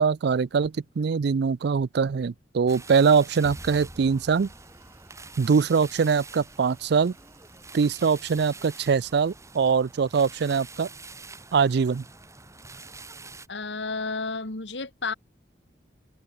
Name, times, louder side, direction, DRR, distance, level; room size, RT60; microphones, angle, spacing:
voice 1, 0.0-4.5 5.4-7.1 7.7-10.9 11.5-12.0, right 5 dB, 65° right, 0.4 m, -23 dB
sound 1, 2.7-13.5, right 3 dB, 15° right, 5.5 m, -46 dB
sound 2, 3.4-6.0, equal, ahead, 1.2 m, -47 dB
sound 3, 4.2-9.3, right 4 dB, 35° right, 6.5 m, -61 dB
voice 2, 13.5-15.1, left 3 dB, 75° left, 2.4 m, -31 dB
head